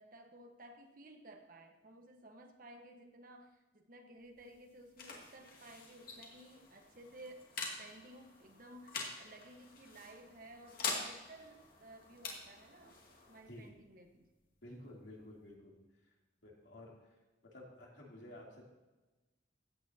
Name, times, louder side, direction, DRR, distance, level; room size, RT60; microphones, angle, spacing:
voice 1, 0.0-7.5 7.8-13.0 13.3-14.3, right 1 dB, 45° right, 5 dB, 1.2 m, -56 dB
sound 1, 4.2-15.5, left 4 dB, 50° left, 2.3 m, -46 dB
voice 2, 14.6-15.8 16.4-16.9 17.5-18.6, left 1 dB, 75° left, -2 dB, 2.9 m, -52 dB
15.0 x 9.2 x 2.8 m, 1.2 s
head